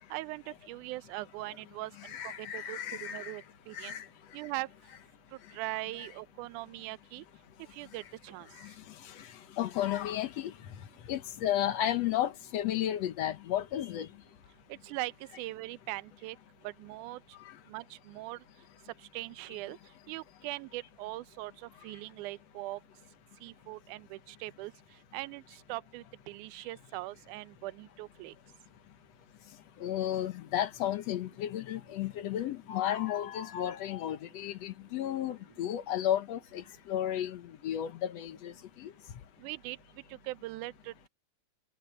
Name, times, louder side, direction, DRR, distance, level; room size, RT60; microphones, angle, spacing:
voice 1, 0.1-4.0 4.3-4.7 5.5-7.2 7.7-8.5 14.7-16.4 16.6-17.2 17.7-18.4 19.1-19.8 20.1-22.8 23.4-24.7 25.1-28.3 39.4-39.8 40.2-41.1, right 19 dB, 80° right, 2.1 m, -41 dB
voice 2, 2.0-3.4 3.7-4.0 9.6-10.5 11.1-14.1 29.8-38.5 38.8-38.9, left 11 dB, 65° left, 1.9 m, -33 dB
omnidirectional pair, 3.6 m